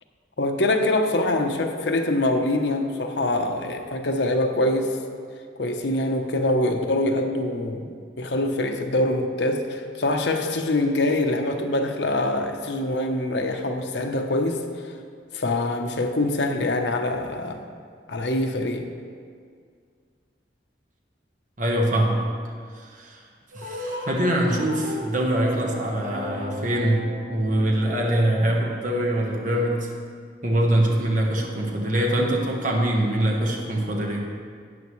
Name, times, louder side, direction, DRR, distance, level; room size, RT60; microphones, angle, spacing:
voice 1, 0.4-5.0 5.6-14.6 15.3-17.6 18.1-18.9, left 1 dB, 75° left, 4 dB, 0.9 m, -24 dB
voice 2, 21.6-22.3 22.7-23.2 23.5-29.9 30.4-34.3, right 1 dB, 45° right, -1 dB, 1.2 m, -23 dB
sound 1, 23.5-28.5, left 1 dB, 70° right, 1.7 m, -36 dB
12.5 x 9.3 x 3.2 m, 2.1 s
head